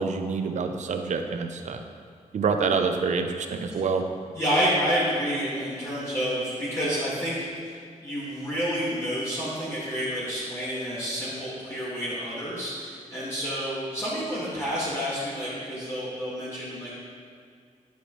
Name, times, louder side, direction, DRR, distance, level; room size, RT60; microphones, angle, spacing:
voice 1, 0.0-1.8 2.3-4.0, right 5 dB, 60° right, 5 dB, 0.7 m, -27 dB
voice 2, 4.3-7.4 7.6-7.8 8.0-16.9, equal, 20° left, -11 dB, 2.3 m, -29 dB
10.5 x 8.0 x 3.3 m, 2.2 s
wide cardioid pair, 140°, 14 cm